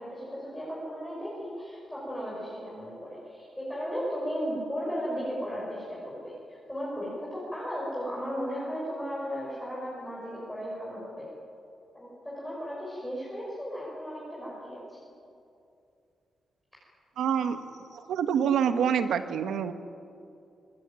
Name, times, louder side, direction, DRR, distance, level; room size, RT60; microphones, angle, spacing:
voice 1, 0.0-6.2 6.5-11.2 11.9-14.8, equal, 5° left, -7 dB, 6.2 m, -35 dB
voice 2, 17.2-17.6 17.9-19.7, right 8 dB, 85° right, 9 dB, 1.5 m, -26 dB
24.5 x 21.0 x 9.2 m, 2.6 s
wide cardioid pair, 170°, 0 cm